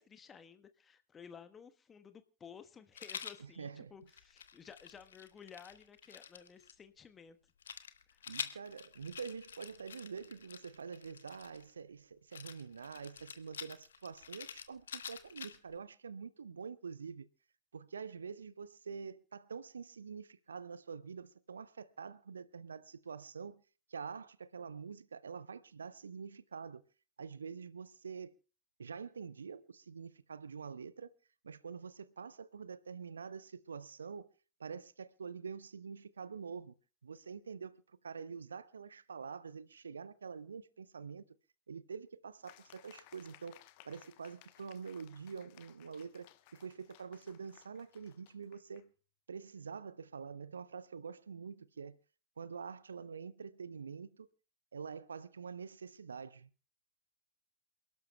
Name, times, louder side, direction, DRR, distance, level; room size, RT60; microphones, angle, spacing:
voice 1, 0.0-7.4 8.1-8.2, left 7 dB, 20° left, 1.2 m, -55 dB
Rattle, 3.0-3.4 4.1-6.7 7.6-11.7 12.3-15.8, left 7 dB, 70° left, 1.1 m, -47 dB
voice 2, 3.4-3.9 8.3-17.3 17.7-23.6 23.9-26.8 27.2-28.4 28.8-31.1 31.4-34.3 34.6-36.7 37.0-41.2 41.7-48.9 49.3-52.0 52.4-54.3 54.7-56.5, right 6 dB, 70° right, 0.7 m, -46 dB
sound 1, 42.4-48.9, left 17 dB, 45° left, 0.9 m, -61 dB
28.5 x 12.0 x 2.2 m
figure-of-eight pair, 90°, 0 cm